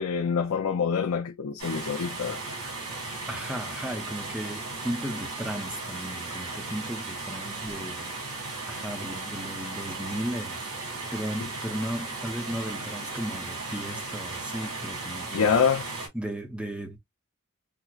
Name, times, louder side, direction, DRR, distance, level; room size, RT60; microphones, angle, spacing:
voice 1, 0.0-2.6 2.9-3.2 15.3-15.9, left 6 dB, 80° left, 0.5 m, -26 dB
sound 1, 1.6-16.1, right 3 dB, 80° right, 2.1 m, -36 dB
voice 2, 3.3-8.1 8.7-15.6 16.1-17.0, equal, 5° right, 0.6 m, -35 dB
5.8 x 2.0 x 2.3 m
head